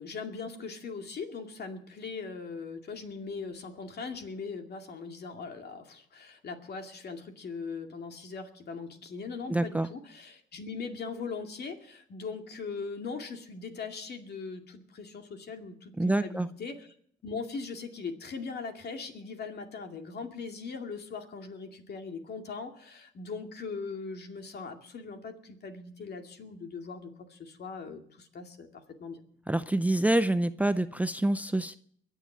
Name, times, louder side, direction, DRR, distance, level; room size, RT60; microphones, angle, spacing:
voice 1, 0.0-16.9 17.2-29.2, left 4 dB, 55° left, 4 dB, 2.4 m, -40 dB
voice 2, 9.5-9.9 16.0-16.5 29.5-31.8, right 1 dB, 5° right, 13 dB, 0.5 m, -26 dB
22.5 x 7.5 x 7.3 m, 0.65 s
cardioid pair, 90°, 20 cm